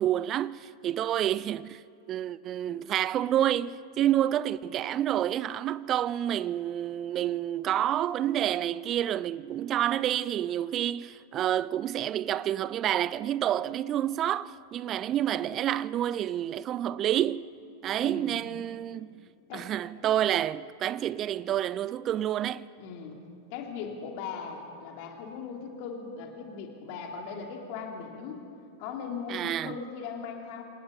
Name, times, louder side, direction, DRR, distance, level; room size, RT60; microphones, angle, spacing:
voice 1, 0.0-1.8 2.1-17.5 17.8-19.2 19.5-22.7 29.3-29.8, right 11 dB, 30° right, 0.5 m, -29 dB
voice 2, 18.0-18.4 19.5-19.7 21.4-21.5 22.8-23.1 23.5-28.4 28.8-30.6, left 5 dB, 45° left, 2.9 m, -39 dB
27.0 x 19.0 x 5.4 m
figure-of-eight pair, 90°, 0 cm